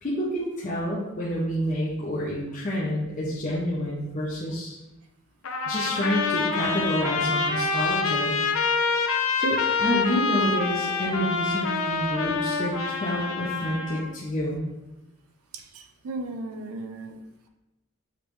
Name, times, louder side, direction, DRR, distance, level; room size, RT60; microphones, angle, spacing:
voice 1, 0.0-4.8 5.7-8.4 9.4-14.7, equal, 35° left, -5 dB, 0.6 m, -28 dB
Trumpet, 5.4-14.1, left 4 dB, 75° left, 0.5 m, -26 dB
voice 2, 15.5-17.2, right 2 dB, 90° right, 6 dB, 0.5 m, -36 dB
4.9 x 3.1 x 3.1 m, 0.99 s
head